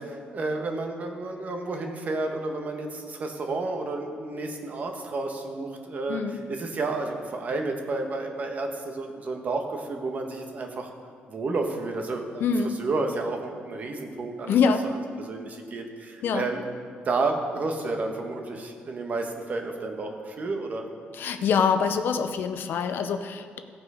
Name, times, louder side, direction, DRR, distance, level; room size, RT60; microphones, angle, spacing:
voice 1, 0.0-10.9 11.3-14.5 15.2-16.8 17.0-20.9, right 3 dB, 45° right, 3 dB, 1.3 m, -31 dB
voice 2, 6.1-6.4 12.4-12.8 14.5-14.9 16.2-16.5 21.1-23.6, left 6 dB, 65° left, 9 dB, 0.7 m, -25 dB
16.5 x 6.1 x 5.0 m, 2.1 s
cardioid pair, 125°, 4 cm